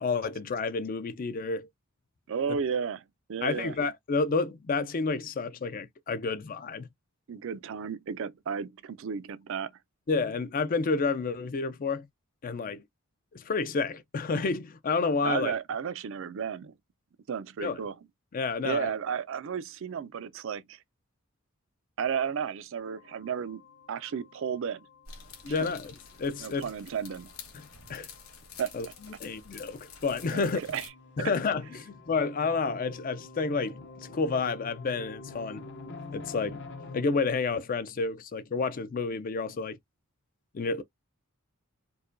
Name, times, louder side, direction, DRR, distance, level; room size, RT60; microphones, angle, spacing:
voice 1, 0.0-1.7 3.4-6.9 10.1-12.1 12.4-12.8 13.3-15.5 17.6-17.8 18.3-18.9 25.4-26.7 27.9-28.1 28.7-28.9 29.2-30.6 31.2-35.6 36.1-36.6 36.9-39.8 40.5-40.8, left 4 dB, 40° left, 0.4 m, -30 dB
voice 2, 2.3-3.0 3.3-3.8 7.3-9.7 15.2-16.7 17.3-18.0 18.6-20.8 22.0-23.6 23.9-24.8 25.5-25.7 26.4-27.3 28.6-28.7 30.3-30.9 31.2-31.3, right 7 dB, 65° right, 0.4 m, -33 dB
sound 1, 22.8-37.0, left 3 dB, 60° left, 0.9 m, -48 dB
sound 2, 25.0-30.9, left 6 dB, 80° left, 1.2 m, -49 dB
4.6 x 2.2 x 2.5 m
head